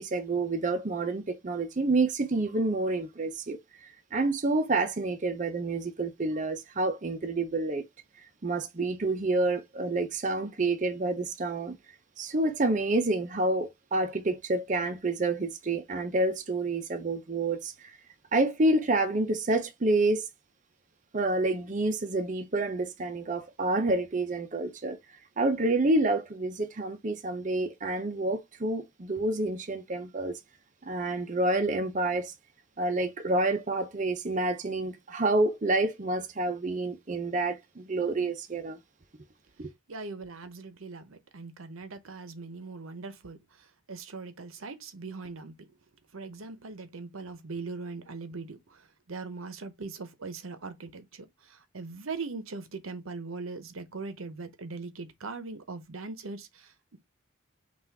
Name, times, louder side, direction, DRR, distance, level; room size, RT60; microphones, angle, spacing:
voice 1, 0.0-7.8 8.4-11.7 12.2-17.9 18.3-20.3 21.1-25.0 25.4-30.4 30.8-32.3 32.8-38.8 39.6-39.7, right 2 dB, 40° right, 0.6 m, -28 dB
voice 2, 39.9-45.7 46.1-57.0, right 4 dB, 85° right, 0.8 m, -40 dB
5.8 x 2.5 x 3.4 m
head